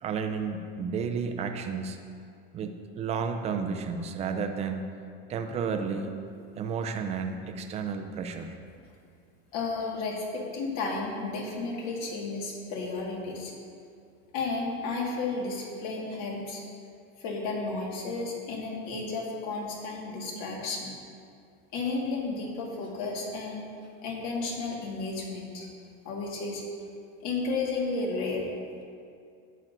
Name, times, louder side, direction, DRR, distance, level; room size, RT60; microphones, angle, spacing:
voice 1, 0.0-2.0 2.5-4.8 5.3-6.1 6.6-8.6, right 5 dB, 20° right, 6 dB, 0.4 m, -32 dB
voice 2, 9.5-13.5 14.3-16.6 17.2-20.9 21.7-23.6 24.0-25.7 26.0-26.6 27.2-28.5, left 3 dB, 55° left, -2 dB, 1.8 m, -33 dB
11.5 x 9.0 x 2.6 m, 2.4 s
cardioid pair, 160°, 32 cm